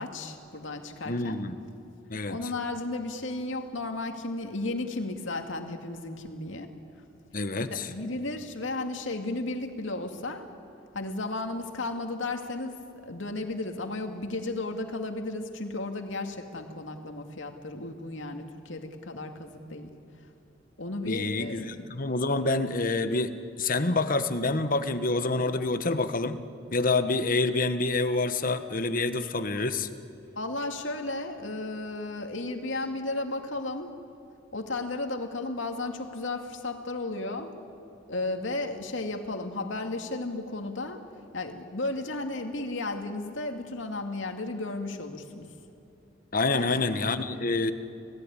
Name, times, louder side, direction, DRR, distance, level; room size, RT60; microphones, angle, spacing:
voice 1, 0.0-1.4 2.3-6.7 7.7-10.5 10.9-19.9 20.8-21.8 30.3-33.9 34.5-37.5 38.1-41.0 41.3-45.5 46.5-46.7, left 2 dB, 80° left, 5 dB, 2.4 m, -34 dB
voice 2, 1.0-1.6 2.1-2.4 7.3-7.9 21.0-26.4 26.7-29.9 46.3-47.7, left 3 dB, 45° left, 10 dB, 1.3 m, -27 dB
29.5 x 17.5 x 9.9 m, 2.8 s
head